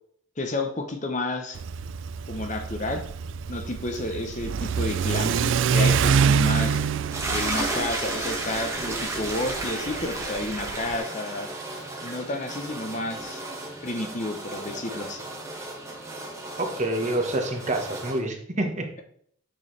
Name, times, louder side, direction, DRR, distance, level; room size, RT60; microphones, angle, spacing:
voice 1, 0.4-1.6 2.3-3.0 3.5-6.8 7.3-11.5 12.0-13.4 13.8-15.2, left 2 dB, 35° left, 5 dB, 0.8 m, -31 dB
Car / Accelerating revving vroom, 1.6-11.0, right 6 dB, 60° right, 0.3 m, -26 dB
sound 1, 7.1-18.2, right 2 dB, 15° right, 1.4 m, -33 dB
voice 2, 16.6-18.9, right 1 dB, 35° right, 3 dB, 1.3 m, -27 dB
8.9 x 6.7 x 3.3 m, 0.62 s
head